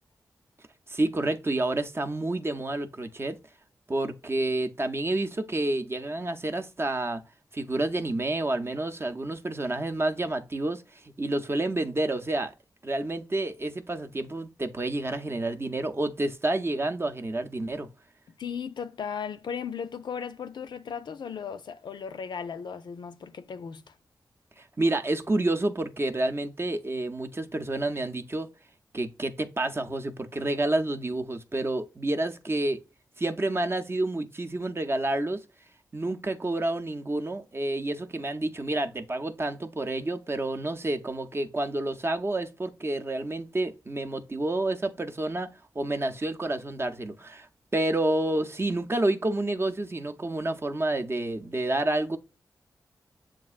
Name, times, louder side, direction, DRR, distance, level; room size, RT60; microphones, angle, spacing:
voice 1, 0.9-3.4 3.9-7.2 7.5-10.8 11.2-12.5 12.8-17.9 24.6-28.5 28.9-32.8 33.2-35.4 35.9-47.5 47.7-52.2, right 2 dB, 30° right, 0.6 m, -29 dB
voice 2, 18.4-23.8, left 7 dB, 70° left, 0.4 m, -36 dB
7.2 x 2.4 x 2.4 m
supercardioid pair, 40°, 8 cm